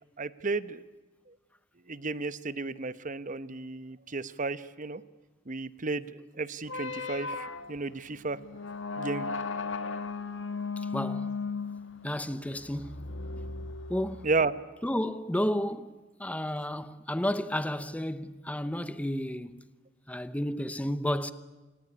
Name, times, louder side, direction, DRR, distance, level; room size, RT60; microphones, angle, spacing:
voice 1, 0.2-0.8 1.3-1.4 1.9-5.0 5.5-8.4 9.0-9.3 14.2-14.6, right 3 dB, 45° right, 1.0 m, -33 dB
sound 1, 6.6-14.4, left 4 dB, 85° left, 1.5 m, -36 dB
voice 2, 10.8-11.4 12.0-13.1 13.9-14.3 14.8-19.7 20.1-21.3, left 1 dB, 10° left, 0.9 m, -32 dB
28.5 x 19.0 x 9.9 m
head